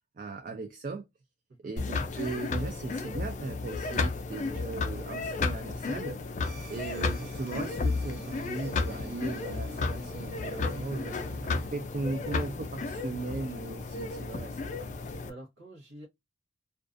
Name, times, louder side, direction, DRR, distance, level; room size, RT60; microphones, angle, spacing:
voice 1, 0.2-1.1 1.6-6.2 6.7-14.7, right 3 dB, 40° right, 0.3 m, -38 dB
sound 1, 1.8-15.3, left 3 dB, 40° left, 0.3 m, -33 dB
sound 2, 6.4-11.7, right 1 dB, 60° right, 1.0 m, -46 dB
voice 2, 15.2-16.1, right 1 dB, 90° right, 0.8 m, -48 dB
2.5 x 2.3 x 2.4 m
head